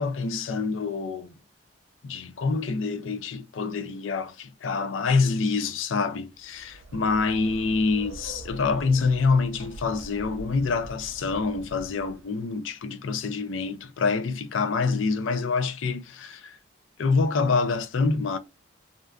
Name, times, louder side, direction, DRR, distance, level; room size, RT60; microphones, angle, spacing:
voice 1, 0.0-1.3 2.0-16.6 17.0-18.4, left 4 dB, 90° left, 0.4 m, -26 dB
sound 1, 6.4-12.4, right 1 dB, 85° right, 0.4 m, -44 dB
2.5 x 2.3 x 2.2 m
head